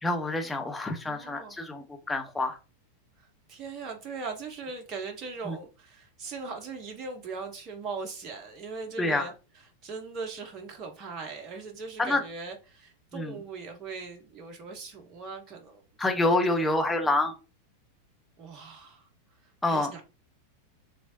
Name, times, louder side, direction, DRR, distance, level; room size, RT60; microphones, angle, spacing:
voice 1, 0.0-2.6 5.4-5.6 9.0-9.2 12.0-12.2 13.1-13.4 16.0-17.3 19.6-19.9, left 2 dB, 10° left, 0.7 m, -27 dB
voice 2, 1.0-1.6 3.2-9.3 9.8-15.8 16.6-16.7 18.4-19.1 19.4-20.0, right 4 dB, 30° right, 0.5 m, -40 dB
3.4 x 3.0 x 2.7 m
figure-of-eight pair, 90°, 0 cm